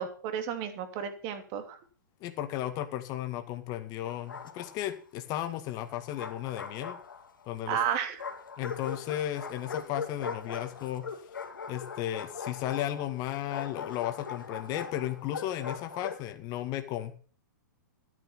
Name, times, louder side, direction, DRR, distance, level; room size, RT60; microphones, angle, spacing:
voice 1, 0.0-1.8 7.7-8.2, right 8 dB, 40° right, 8 dB, 2.8 m, -32 dB
voice 2, 2.2-7.0 7.5-7.8 8.6-11.0 11.7-17.1, left 12 dB, 35° left, 8 dB, 2.0 m, -34 dB
Bark, 4.1-5.0 5.9-7.5 8.2-16.3, left 5 dB, 90° left, 2.3 m, -40 dB
13.0 x 9.9 x 5.7 m, 0.40 s
hypercardioid pair, 125°, 11 cm